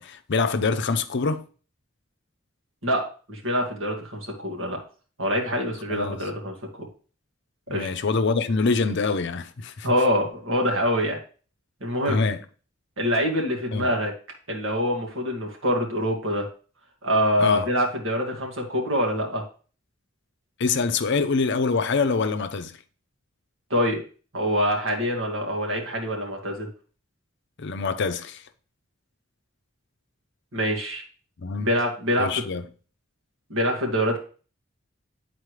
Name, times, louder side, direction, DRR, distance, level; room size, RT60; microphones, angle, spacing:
voice 1, 0.0-1.4 5.9-6.3 7.7-9.9 12.1-12.4 13.7-13.9 17.4-17.7 20.6-22.8 27.6-28.4 31.4-31.7 32.2-32.7, left 4 dB, 60° left, 0.6 m, -25 dB
voice 2, 2.8-4.8 5.2-6.9 7.7-7.9 9.8-11.2 11.8-12.2 13.0-14.1 14.5-16.5 17.0-19.4 23.7-24.0 24.3-26.7 30.5-31.0 31.6-32.3 33.5-34.2, equal, 70° right, 2.1 m, -25 dB
9.6 x 4.3 x 3.2 m
head